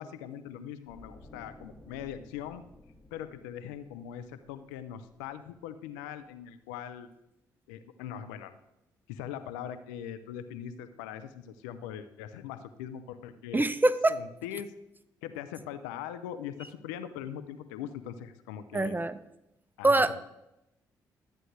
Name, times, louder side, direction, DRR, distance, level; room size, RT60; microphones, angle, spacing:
voice 1, 0.0-2.6 3.1-7.1 7.7-8.6 9.1-13.7 14.1-14.7 15.2-19.0 19.8-20.2, left 9 dB, 90° left, 11 dB, 0.6 m, -41 dB
sound 1, 0.9-5.9 6.2-6.5, left 1 dB, 15° left, 1.9 m, -55 dB
voice 2, 13.5-14.2 18.7-19.2 19.8-20.2, right 2 dB, 20° right, 14 dB, 0.7 m, -24 dB
13.0 x 9.0 x 3.3 m, 0.87 s
hypercardioid pair, 45°, 9 cm